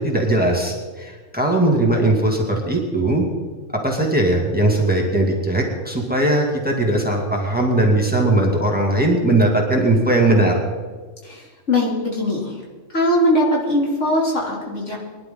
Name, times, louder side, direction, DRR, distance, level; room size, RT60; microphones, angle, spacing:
voice 1, 0.0-3.2 3.7-10.6, right 1 dB, 5° right, -1 dB, 2.4 m, -19 dB
voice 2, 11.2-12.6 12.9-15.0, left 1 dB, 70° left, -3 dB, 3.6 m, -20 dB
22.5 x 11.5 x 3.9 m, 1.5 s
omnidirectional pair, 1.3 m